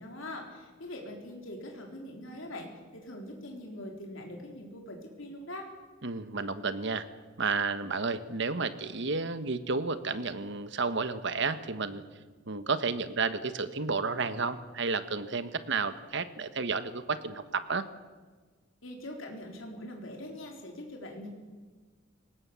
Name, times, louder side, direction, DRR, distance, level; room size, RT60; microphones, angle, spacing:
voice 1, 0.0-5.7 18.8-21.3, left 1 dB, 70° left, 1 dB, 3.9 m, -42 dB
voice 2, 6.0-7.1 7.4-12.0 12.5-17.8, right 4 dB, 60° right, 12 dB, 1.2 m, -31 dB
22.5 x 19.0 x 7.0 m, 1.4 s
head